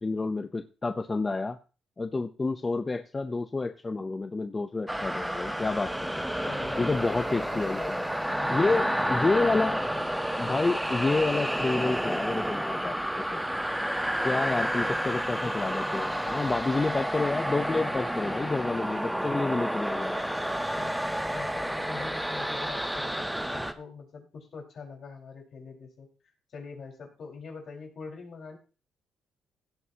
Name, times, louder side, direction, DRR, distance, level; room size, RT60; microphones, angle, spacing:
voice 1, 0.0-1.6 2.0-6.2 6.8-7.8 8.5-9.8 10.4-13.4 14.2-20.2, left 3 dB, 25° left, 9 dB, 0.7 m, -29 dB
sound 1, 4.9-23.7, equal, 5° right, 1.2 m, -30 dB
voice 2, 6.4-6.9 7.2-10.0 14.4-15.1 16.6-16.8 20.7-20.9 21.3-28.6, left 5 dB, 60° left, 1 dB, 4.9 m, -44 dB
16.5 x 9.2 x 2.9 m, 0.35 s
cardioid pair, 90°, 0 cm